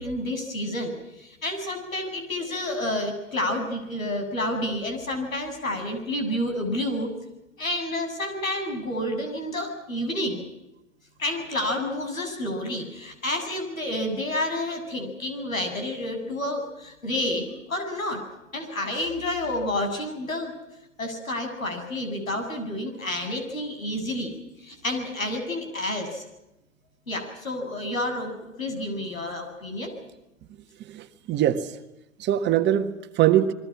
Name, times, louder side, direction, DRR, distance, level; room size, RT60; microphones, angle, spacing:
voice 1, 0.0-7.1 7.6-10.4 11.2-18.2 18.5-20.5 21.0-26.2 27.1-28.3 28.6-29.9, left 1 dB, 85° left, 5 dB, 7.6 m, -29 dB
voice 2, 30.8-31.7 32.2-33.5, right 11 dB, 25° right, 8 dB, 1.6 m, -22 dB
29.5 x 22.5 x 6.2 m, 0.92 s
figure-of-eight pair, 110°, 40 cm